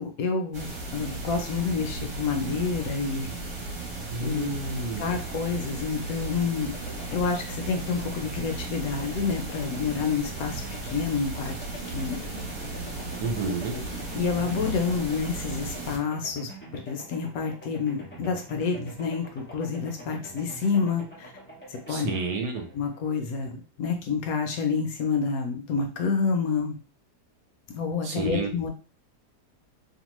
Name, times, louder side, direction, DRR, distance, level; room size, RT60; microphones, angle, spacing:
voice 1, 0.0-3.3 4.2-4.5 5.0-6.7 7.1-10.6 10.9-11.6 11.9-12.2 13.4-13.8 14.1-21.3 21.7-22.1 22.7-26.8 27.8-28.7, left 5 dB, 70° left, 4 dB, 0.9 m, -28 dB
sound 1, 0.5-16.0, right 2 dB, 55° right, 1.2 m, -35 dB
voice 2, 4.1-5.1 13.2-13.8 21.9-22.7 28.0-28.5, right 3 dB, 85° right, 4 dB, 1.2 m, -30 dB
sound 2, 6.6-23.5, right 1 dB, 15° left, 0.4 m, -46 dB
2.9 x 2.1 x 3.0 m, 0.35 s
omnidirectional pair, 1.7 m